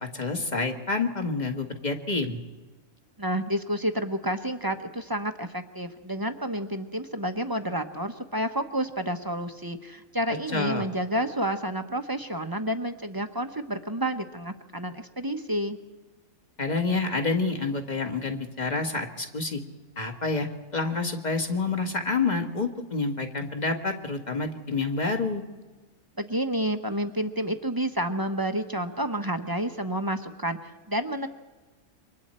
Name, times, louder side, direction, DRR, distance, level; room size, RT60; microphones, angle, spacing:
voice 1, 0.1-2.4 10.3-10.8 16.6-19.6 20.0-20.5 20.7-25.4, left 3 dB, 30° left, 4 dB, 1.7 m, -28 dB
voice 2, 3.2-15.8 26.2-31.3, right 1 dB, 20° right, 7 dB, 0.9 m, -30 dB
28.0 x 24.0 x 4.4 m, 1.3 s
omnidirectional pair, 1.5 m